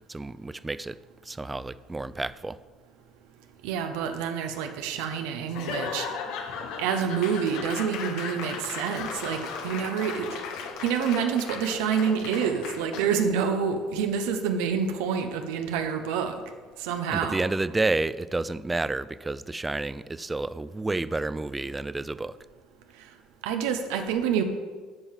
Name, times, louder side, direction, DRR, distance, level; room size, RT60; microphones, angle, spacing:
voice 1, 0.1-1.0 1.2-2.6 17.1-22.4, right 2 dB, 15° right, 16 dB, 0.3 m, -30 dB
voice 2, 3.6-6.1 6.8-10.3 10.8-16.4 16.8-17.5 23.4-24.4, right 7 dB, 85° right, 6 dB, 0.8 m, -27 dB
Laughter / Applause / Crowd, 5.5-13.3, left 6 dB, 75° left, 1.1 m, -36 dB
8.1 x 5.6 x 7.3 m, 1.5 s
supercardioid pair, 105°, 0 cm